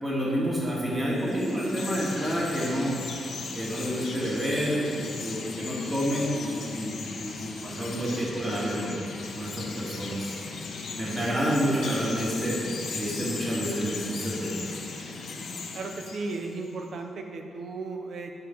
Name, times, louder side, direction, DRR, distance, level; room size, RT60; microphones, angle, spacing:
voice 1, 0.0-2.9 3.5-8.9 9.4-10.4 11.0-12.6 12.9-14.6, equal, 25° right, -6 dB, 2.2 m, -29 dB
Chirp tweet, 1.1-16.7, left 4 dB, 75° left, 1.1 m, -37 dB
voice 2, 15.7-18.4, right 3 dB, 70° right, 4 dB, 0.8 m, -35 dB
10.5 x 5.2 x 4.5 m, 2.4 s
cardioid pair, 100°, 0 cm